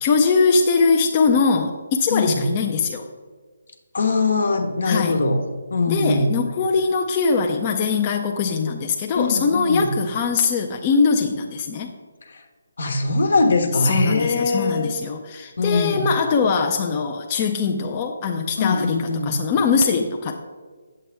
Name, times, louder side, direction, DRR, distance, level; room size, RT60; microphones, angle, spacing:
voice 1, 0.0-3.1 4.8-5.2 5.9-11.9 13.8-19.0 19.2-20.3, left 4 dB, 25° left, 2 dB, 0.5 m, -21 dB
voice 2, 2.1-2.4 3.9-5.4 5.7-6.3 9.1-9.9 12.3-12.4 12.8-15.0 15.6-16.0 18.6-19.3, left 3 dB, 70° left, 6 dB, 1.2 m, -22 dB
8.5 x 7.6 x 3.4 m, 1.5 s
hypercardioid pair, 155°, 0 cm